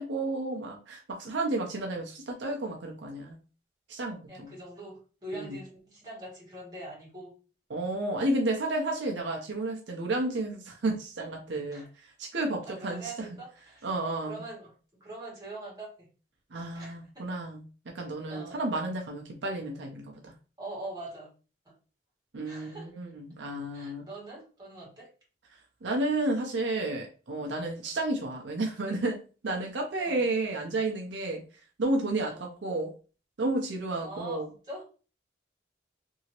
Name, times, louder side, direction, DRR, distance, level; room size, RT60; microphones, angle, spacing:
voice 1, 0.0-3.4 3.9-4.5 5.3-5.6 7.7-11.9 12.2-13.1 13.8-14.4 16.5-17.7 17.9-20.3 22.3-24.1 25.8-29.2 29.4-31.4 31.8-32.9 33.4-34.5, right 2 dB, 75° right, 1 dB, 0.6 m, -31 dB
voice 2, 4.3-7.4 11.7-11.9 12.7-14.7 15.0-16.1 16.7-17.3 18.3-18.6 20.6-21.3 21.6-21.7 22.4-22.9 23.7-25.1 30.0-30.3 32.2-32.5 34.0-34.9, right 2 dB, 20° right, -6 dB, 1.4 m, -43 dB
2.8 x 2.7 x 2.8 m, 0.35 s
head